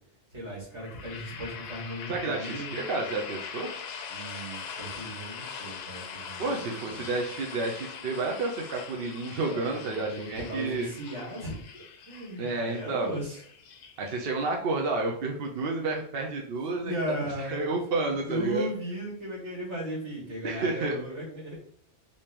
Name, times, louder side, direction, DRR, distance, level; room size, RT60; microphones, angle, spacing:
voice 1, 0.3-2.8 4.1-7.0 9.4-13.4 16.8-17.7 18.1-21.6, equal, 85° right, -4 dB, 2.4 m, -37 dB
sound 1, 0.7-14.5, left 6 dB, 70° left, 0.8 m, -42 dB
voice 2, 2.1-3.7 6.4-10.9 12.4-13.2 14.0-16.9 17.4-18.7 20.4-20.9, right 3 dB, 65° right, 1 dB, 0.9 m, -30 dB
5.3 x 2.9 x 3.2 m, 0.62 s
omnidirectional pair, 1.2 m